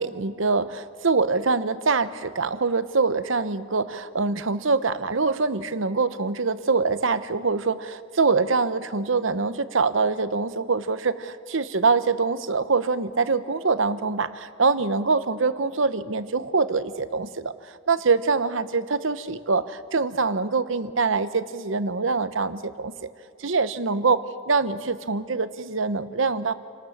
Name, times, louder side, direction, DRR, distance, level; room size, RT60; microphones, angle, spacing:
voice 1, 0.0-22.9 23.4-26.5, right 4 dB, 70° right, 13 dB, 1.0 m, -24 dB
28.5 x 19.0 x 7.3 m, 2.2 s
head